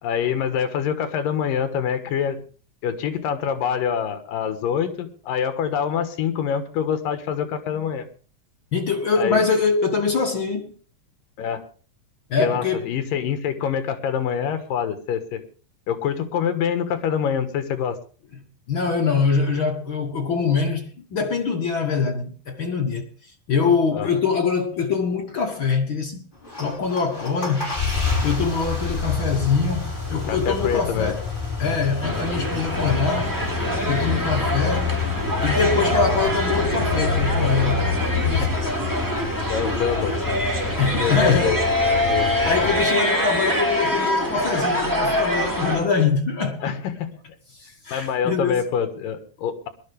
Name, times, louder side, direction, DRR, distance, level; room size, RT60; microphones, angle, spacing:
voice 1, 0.0-2.4 2.8-8.1 9.2-9.4 11.4-11.6 12.4-15.4 15.9-18.0 23.9-24.1 30.3-31.2 31.6-31.8 38.4-38.5 39.5-40.5 40.9-41.6 41.9-42.3 46.6-47.2 47.9-49.7, left 8 dB, 75° left, 3.1 m, -25 dB
voice 2, 8.7-10.7 12.3-12.9 18.7-23.0 23.5-26.2 26.6-27.7 28.2-31.3 31.6-33.3 33.9-34.9 35.4-37.9 38.2-38.5 40.7-41.6 42.1-46.8 47.6-48.6, left 5 dB, 60° left, 1.3 m, -23 dB
sound 1, 26.3-42.8, left 4 dB, 15° left, 4.9 m, -30 dB
sound 2, 32.0-45.8, equal, 5° right, 2.7 m, -25 dB
sound 3, 32.8-38.5, left 5 dB, 40° right, 5.5 m, -27 dB
20.5 x 12.0 x 3.4 m
omnidirectional pair, 4.0 m